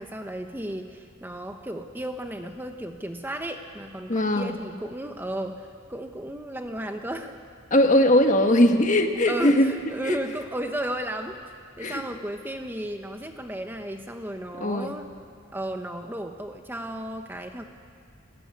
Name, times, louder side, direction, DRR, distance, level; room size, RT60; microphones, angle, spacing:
voice 1, 0.0-7.4 9.3-15.1 15.5-17.6, right 1 dB, 10° right, 5 dB, 0.9 m, -34 dB
voice 2, 4.1-4.5 7.7-9.7 10.0-10.2 11.8-12.0 14.6-14.9, left 1 dB, 35° left, 5 dB, 1.5 m, -20 dB
27.5 x 14.0 x 9.7 m, 2.1 s
head